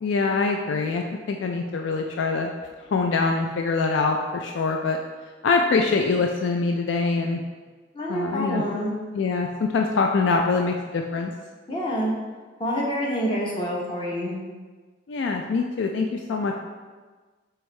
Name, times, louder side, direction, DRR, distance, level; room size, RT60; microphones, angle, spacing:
voice 1, 0.0-2.5 2.9-5.0 5.4-7.4 8.1-8.6 9.1-11.3 15.1-16.5, left 4 dB, 70° left, 3 dB, 0.3 m, -24 dB
voice 2, 7.9-8.9 11.7-12.1 12.6-14.3, equal, 25° left, -4 dB, 0.9 m, -27 dB
4.7 x 3.5 x 3.2 m, 1.4 s
head